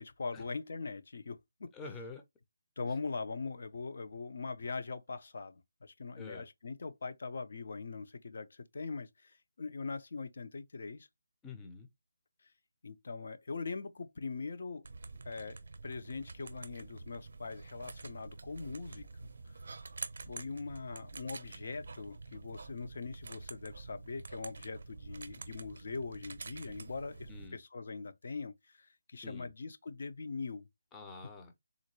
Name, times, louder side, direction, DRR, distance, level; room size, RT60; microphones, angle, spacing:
voice 1, 0.0-1.7 2.8-11.1 12.8-14.9 15.3-19.6 20.2-30.7, left 4 dB, 55° left, 0.5 m, -42 dB
voice 2, 1.7-2.2 6.2-6.5 11.4-11.9 26.7-26.9 27.3-27.6 29.2-29.5 30.9-31.5, left 3 dB, 10° left, 0.5 m, -47 dB
sound 1, 14.8-27.5, right 3 dB, 60° right, 0.6 m, -48 dB
3.7 x 2.2 x 2.9 m
figure-of-eight pair, 165°, 0 cm